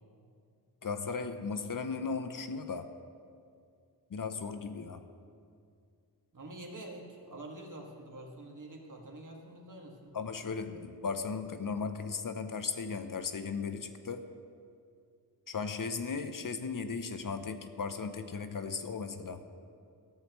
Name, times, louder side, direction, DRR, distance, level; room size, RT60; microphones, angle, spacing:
voice 1, 0.8-2.9 4.1-5.0 10.1-14.3 15.5-19.4, left 5 dB, 55° left, 9 dB, 0.8 m, -36 dB
voice 2, 6.3-10.1, right 1 dB, 50° right, 0 dB, 2.0 m, -46 dB
15.0 x 13.5 x 3.1 m, 2.3 s
cardioid pair, 55°, 40 cm